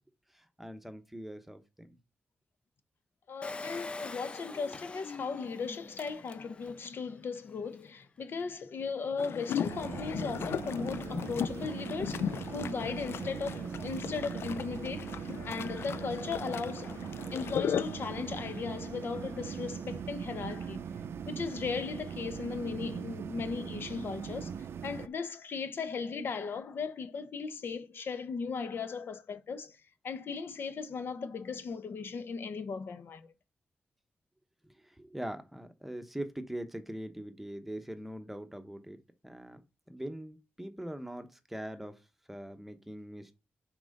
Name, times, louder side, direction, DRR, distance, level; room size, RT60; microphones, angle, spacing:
voice 1, 0.3-2.0 34.6-43.4, right 1 dB, 5° right, 0.9 m, -42 dB
voice 2, 3.3-17.0 17.3-20.9 21.3-24.6 24.8-29.8 30.0-33.3, left 5 dB, 65° left, 0.9 m, -37 dB
Engine, 3.4-6.9 7.4-7.5 7.6-7.7, left 3 dB, 25° left, 0.4 m, -44 dB
sound 1, 9.2-18.1, left 8 dB, 85° left, 0.4 m, -37 dB
sound 2, 9.6-25.1, right 7 dB, 85° right, 0.5 m, -40 dB
6.0 x 4.4 x 6.5 m
wide cardioid pair, 125°, 4 cm